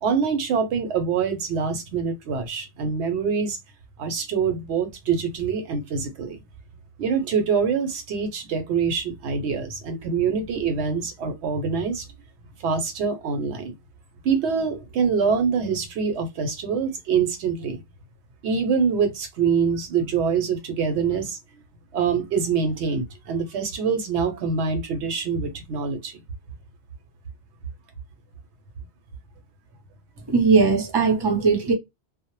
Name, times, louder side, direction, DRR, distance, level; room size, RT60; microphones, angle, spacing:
voice 1, 0.0-3.6 4.0-6.4 7.0-12.0 12.6-13.7 14.2-17.8 18.4-21.4 21.9-26.2, right 6 dB, 80° right, 0.9 m, -25 dB
voice 2, 30.3-31.7, right 4 dB, 30° right, 0.6 m, -19 dB
2.0 x 2.0 x 3.0 m
omnidirectional pair, 1.2 m